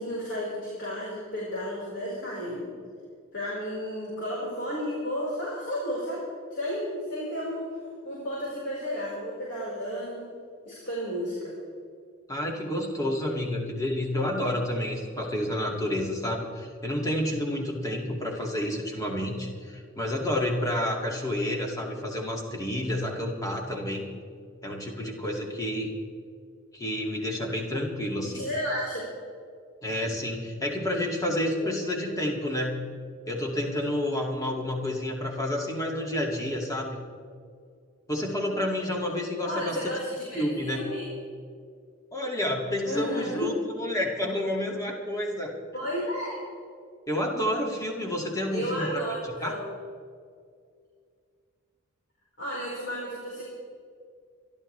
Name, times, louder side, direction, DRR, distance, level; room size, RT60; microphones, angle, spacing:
voice 1, 0.0-2.7 3.3-6.2 6.5-7.7 8.0-10.3 10.6-11.5 28.2-29.0 31.6-31.7 39.4-41.1 42.8-43.5 45.7-46.3 48.5-49.6 52.4-53.4, equal, 55° left, -6 dB, 4.7 m, -32 dB
voice 2, 12.3-24.1 24.6-25.9 26.7-28.4 29.8-32.8 33.3-37.0 38.1-39.8 40.3-40.8 42.1-45.5 47.1-49.0 49.4-49.5, left 1 dB, 15° left, 0 dB, 2.2 m, -29 dB
27.5 x 12.5 x 3.3 m, 2.2 s
head